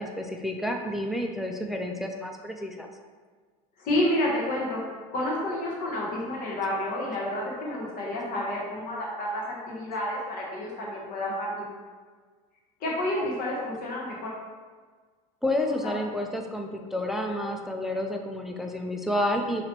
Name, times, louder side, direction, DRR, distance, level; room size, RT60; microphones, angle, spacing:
voice 1, 0.0-2.9 15.4-19.6, left 1 dB, ahead, 2 dB, 0.3 m, -30 dB
voice 2, 3.8-4.8 5.1-11.7 12.8-14.3, left 1 dB, 50° left, -3 dB, 1.1 m, -29 dB
5.7 x 2.9 x 3.0 m, 1.5 s
supercardioid pair, 125°, 18 cm